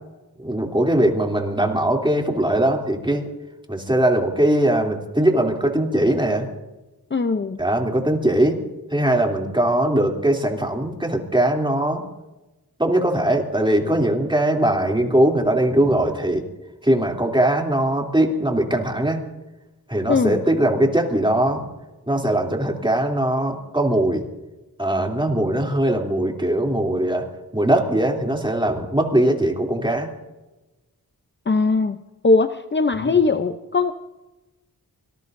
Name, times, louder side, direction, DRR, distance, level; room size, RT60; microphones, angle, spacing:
voice 1, 0.4-3.3 3.7-6.5 7.6-8.6 8.9-12.0 12.8-16.4 16.8-19.2 19.9-21.6 22.1-24.2 24.8-27.3 27.5-30.1 32.9-33.2, right 1 dB, 15° right, 1 dB, 3.1 m, -20 dB
voice 2, 7.1-7.6 20.1-20.4 31.5-32.0 32.2-33.9, left 4 dB, 30° left, 8 dB, 0.7 m, -20 dB
25.0 x 19.5 x 2.7 m, 1.1 s
wide cardioid pair, 65°, 37 cm